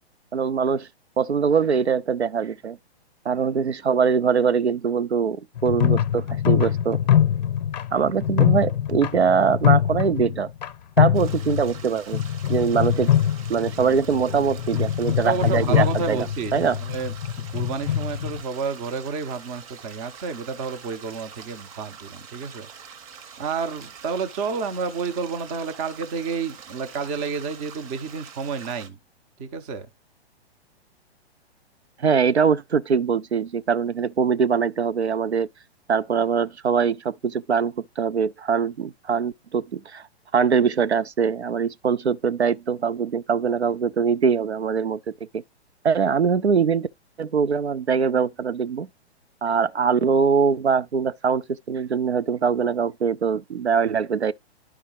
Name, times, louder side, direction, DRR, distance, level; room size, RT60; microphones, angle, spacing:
voice 1, 0.3-0.9 1.2-2.8 3.3-7.0 7.9-10.5 11.0-12.2 12.5-13.1 13.5-16.8 32.0-35.5 35.9-40.0 40.3-45.4 45.8-46.9 47.2-48.9 49.4-54.3, right 6 dB, 80° right, 0.6 m, -22 dB
sound 1, 5.6-10.7 11.0-11.8 12.1-18.4, left 10 dB, 40° left, 0.7 m, -23 dB
sound 2, 11.1-28.9, right 7 dB, 35° right, 0.9 m, -45 dB
voice 2, 15.2-17.1 17.5-22.7 23.4-29.0 29.4-29.9, right 5 dB, 15° right, 0.5 m, -30 dB
11.5 x 4.8 x 2.9 m
figure-of-eight pair, 120°, 33 cm